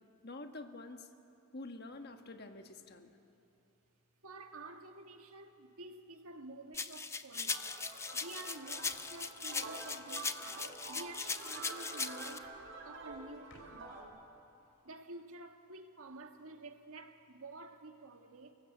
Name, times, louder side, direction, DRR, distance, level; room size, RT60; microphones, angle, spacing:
voice 1, 0.2-1.1 1.5-3.1, left 2 dB, 45° left, 1.4 m, -47 dB
voice 2, 4.2-7.6 8.1-12.5 12.8-14.2 14.8-18.5, right 2 dB, 75° right, 1.6 m, -50 dB
sound 1, 6.7-12.4, left 4 dB, 10° left, 0.6 m, -39 dB
sound 2, 7.5-14.0, right 3 dB, 55° right, 4.3 m, -48 dB
sound 3, 8.6-14.2, left 1 dB, 65° left, 4.0 m, -65 dB
29.5 x 19.0 x 8.0 m
head